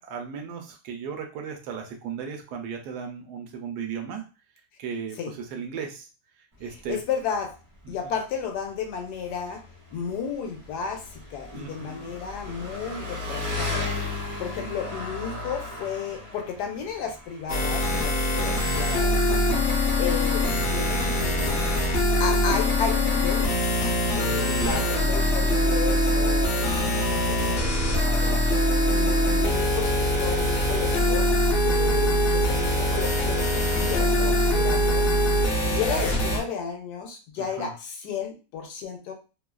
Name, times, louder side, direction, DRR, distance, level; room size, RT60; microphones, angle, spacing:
voice 1, 0.0-4.2 4.8-5.2 5.5-6.1 6.6-7.0 8.0-8.1 11.5-12.1 12.5-12.6 14.6-14.8 19.3-19.7 24.6-24.9 28.0-28.5 37.4-37.7, right 6 dB, 75° right, 3 dB, 1.1 m, -36 dB
Engine, 6.5-26.1, left 3 dB, 40° right, 0.4 m, -38 dB
voice 2, 6.7-7.5 7.9-13.9 14.4-19.2 20.0-21.6 22.2-23.8 24.2-28.4 28.9-31.3 31.5-35.1 35.6-39.1, left 6 dB, 75° left, 3 dB, 1.1 m, -33 dB
sound 1, 17.5-36.4, left 1 dB, 60° left, 0.6 m, -23 dB
3.0 x 2.3 x 2.3 m, 0.32 s
omnidirectional pair, 1.9 m